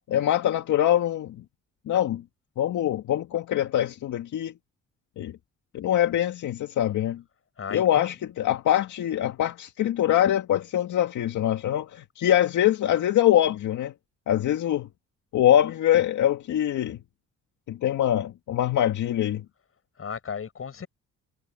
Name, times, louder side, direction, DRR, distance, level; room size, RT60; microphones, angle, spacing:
voice 1, 0.1-1.4 1.9-2.2 2.6-4.5 5.2-5.4 5.7-7.2 7.7-13.9 14.3-14.9 15.3-17.0 17.7-19.4, left 11 dB, 75° left, 2.1 m, -23 dB
voice 2, 7.6-8.1 20.0-20.9, left 6 dB, 45° left, 7.4 m, -35 dB
cardioid pair, 90°, 30 cm